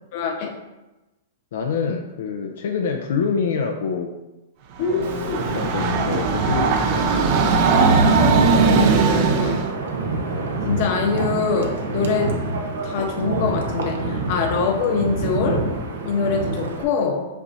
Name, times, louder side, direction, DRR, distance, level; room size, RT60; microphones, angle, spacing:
voice 1, 0.1-0.6 4.8-5.6 7.9-9.6 10.6-12.4 12.8-15.7 16.0-17.3, left 5 dB, 45° left, 3 dB, 1.0 m, -24 dB
voice 2, 1.5-4.1 4.9-7.5, left 6 dB, 75° left, 2 dB, 0.6 m, -26 dB
Train, 4.8-9.7, right 5 dB, 40° right, 0.7 m, -19 dB
Wind, 5.0-16.8, right 2 dB, 85° right, 1.1 m, -28 dB
6.2 x 5.8 x 2.7 m, 1.0 s
supercardioid pair, 150°, 0 cm